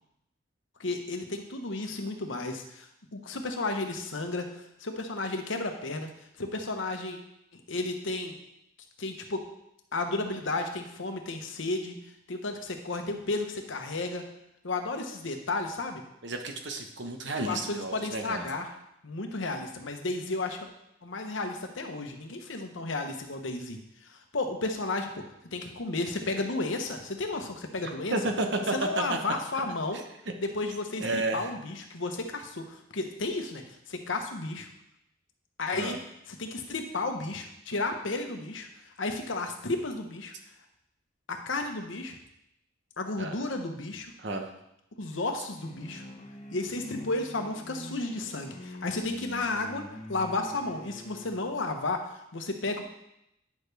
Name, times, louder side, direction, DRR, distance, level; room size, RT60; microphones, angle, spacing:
voice 1, 0.8-4.5 4.8-6.1 6.4-7.2 7.5-8.3 9.0-9.4 9.9-12.0 12.3-14.2 14.6-16.0 17.4-18.7 19.0-20.7 21.0-28.1 28.7-30.0 30.4-34.7 35.6-36.0 36.3-40.3 41.3-42.1 43.0-44.1 45.0-46.0 46.5-49.8 50.1-52.8, left 2 dB, 75° left, 5 dB, 1.0 m, -33 dB
voice 2, 16.2-18.5 28.1-29.2 31.0-31.5 35.7-36.0 43.2-43.3 44.2-44.5, right 2 dB, 65° right, 4 dB, 1.0 m, -31 dB
sound 1, 45.6-51.4, left 1 dB, 35° left, 0.9 m, -44 dB
9.6 x 6.4 x 3.4 m, 0.81 s
head